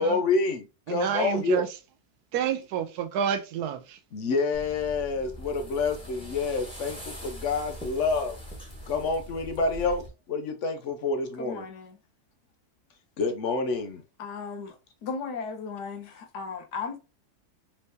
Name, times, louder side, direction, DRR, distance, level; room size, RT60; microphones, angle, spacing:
voice 1, 0.0-1.7 4.1-8.3 8.9-10.0 10.3-11.6 13.2-14.0, left 4 dB, 60° left, 0.9 m, -28 dB
voice 2, 0.9-1.7 2.3-4.0, right 8 dB, 80° right, 1.2 m, -29 dB
sound 1, 4.5-10.1, equal, 5° left, 1.4 m, -42 dB
voice 3, 11.4-12.0 14.2-14.8 15.0-17.0, left 5 dB, 90° left, 1.5 m, -36 dB
4.4 x 3.3 x 2.7 m
omnidirectional pair, 1.7 m